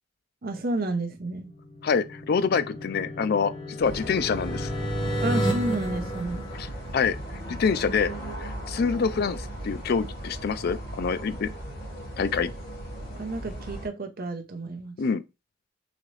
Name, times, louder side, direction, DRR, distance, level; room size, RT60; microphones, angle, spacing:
voice 1, 0.4-1.5 5.2-6.5 13.1-15.0, right 2 dB, 50° right, 0.7 m, -31 dB
sound 1, 1.4-7.2, equal, 30° left, 1.0 m, -32 dB
voice 2, 1.8-3.5 3.8-4.7 6.5-6.7 6.9-7.2 7.5-8.1 8.4-11.5 12.2-12.5 15.0-15.2, left 5 dB, 55° left, 0.4 m, -26 dB
sound 2, 3.8-13.9, right 1 dB, 80° left, 1.8 m, -37 dB
4.0 x 2.9 x 3.1 m
head